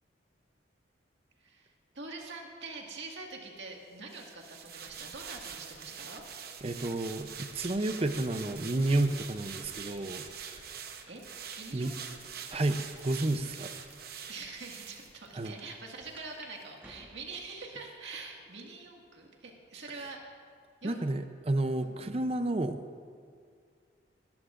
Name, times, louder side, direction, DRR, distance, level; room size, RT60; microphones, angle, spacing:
voice 1, 1.4-6.2 11.1-11.2 11.6-12.2 14.3-20.3 20.8-21.0 21.8-22.0, right 3 dB, 75° right, 0 dB, 1.9 m, -45 dB
sound 1, 4.1-15.7 16.0-16.2, right 7 dB, 55° right, 0.9 m, -45 dB
voice 2, 6.6-10.2 10.5-10.6 11.7-11.9 12.5-13.7 15.3-15.5 20.0-20.1 20.8-22.8, right 2 dB, 30° right, 9 dB, 0.6 m, -31 dB
sound 2, 11.1-11.2 11.5-11.7 12.1-12.9 13.6-13.7 14.4-14.5 14.8-14.9 16.2-16.5 16.8-17.6 18.1-18.6 19.1-19.2 20.3-20.8, right 1 dB, 10° right, 1.2 m, -56 dB
20.0 x 13.0 x 2.5 m, 2.2 s
head